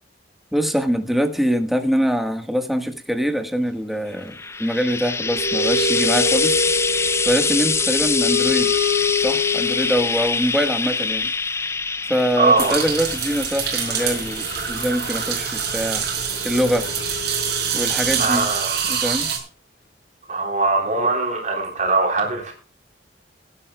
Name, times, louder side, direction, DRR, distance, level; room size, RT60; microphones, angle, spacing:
voice 1, 0.5-6.6 7.2-8.7 9.2-11.3 12.1-16.1 16.4-16.9 17.7-18.4 18.9-19.3, equal, ahead, 1.3 m, -23 dB
Frying (food), 4.2-17.6 18.6-18.7, left 4 dB, 15° left, 0.5 m, -25 dB
sound 1, 5.1-10.4 12.3-12.4 12.6-18.1, left 4 dB, 60° left, 2.8 m, -27 dB
voice 2, 12.4-12.8 18.2-18.9 20.3-22.5, right 3 dB, 45° right, 3.6 m, -21 dB
sound 2, 12.6-19.4, right 7 dB, 65° right, 5.1 m, -25 dB
21.0 x 10.5 x 2.2 m
head